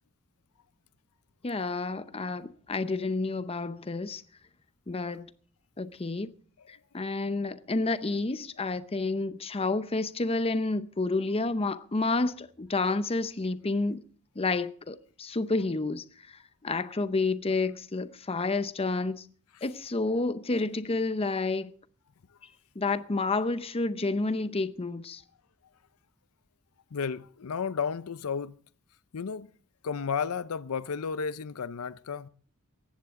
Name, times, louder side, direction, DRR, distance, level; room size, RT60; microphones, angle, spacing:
voice 1, 1.4-4.2 4.9-5.3 5.8-6.3 6.7-14.0 14.4-16.0 16.6-19.2 19.6-21.7 22.8-25.2, left 3 dB, 25° left, 0.7 m, -30 dB
voice 2, 26.9-28.6 29.1-29.5 29.8-32.3, left 6 dB, 85° left, 0.6 m, -33 dB
18.0 x 14.5 x 3.7 m
head